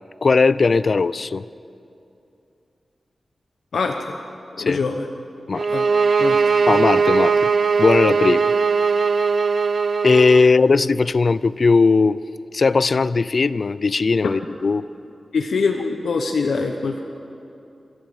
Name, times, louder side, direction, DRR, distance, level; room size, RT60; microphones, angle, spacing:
voice 1, 0.2-1.4 4.6-4.8 5.5-5.7 6.7-7.3 7.8-8.5 10.0-12.2 12.5-14.8, left 4 dB, 45° left, 17 dB, 0.4 m, -18 dB
voice 2, 3.7-4.2 4.6-5.1 5.7-5.8 6.2-6.4 15.3-17.0, left 4 dB, 85° left, 3 dB, 1.1 m, -23 dB
sound 1, 5.5-10.4, right 5 dB, 55° right, 0.6 m, -19 dB
26.0 x 14.5 x 7.8 m, 2.7 s
wide cardioid pair, 140°, 0 cm